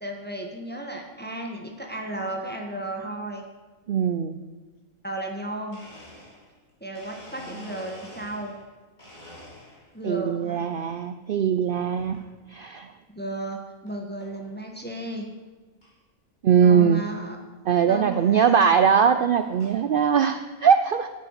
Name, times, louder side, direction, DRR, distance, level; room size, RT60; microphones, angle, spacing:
voice 1, 0.0-3.4 5.0-5.8 6.8-8.5 9.9-10.6 13.1-15.3 16.6-17.4 17.9-18.7, right 1 dB, 10° left, 2 dB, 1.1 m, -34 dB
voice 2, 3.9-4.4 10.0-12.2 12.5-12.9 16.4-17.0 17.7-21.1, right 7 dB, 90° right, 10 dB, 0.4 m, -21 dB
Domestic sounds home sounds, 5.7-8.7 9.0-10.0 10.5-11.0 12.0-12.3 12.9-13.0 13.9-14.0 14.2-14.5 15.0-15.1 15.3-15.4 15.8-15.9 17.2-17.3 18.1-18.3 18.9-19.8, equal, 30° left, 3.1 m, -46 dB
9.2 x 8.6 x 6.4 m, 1.2 s
omnidirectional pair, 1.5 m